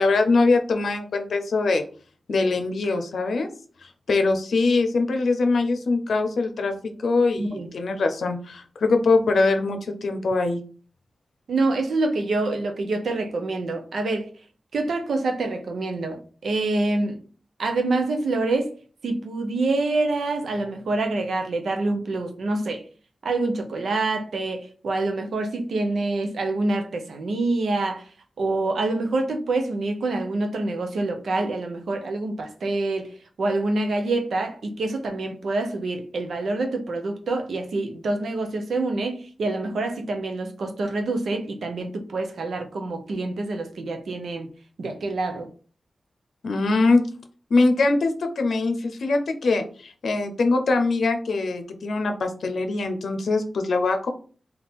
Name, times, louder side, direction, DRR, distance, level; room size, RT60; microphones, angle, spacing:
voice 1, 0.0-1.8 2.3-3.5 3.8-6.7 7.0-10.6 46.4-47.0 47.5-54.1, left 3 dB, 80° left, 0.6 m, -22 dB
voice 2, 7.4-7.7 11.5-14.3 14.7-17.2 17.6-18.7 19.0-22.8 23.2-28.1 28.4-33.1 33.4-44.5 44.8-45.5, right 2 dB, 85° right, 0.8 m, -26 dB
3.6 x 2.7 x 4.1 m
wide cardioid pair, 105°, 0 cm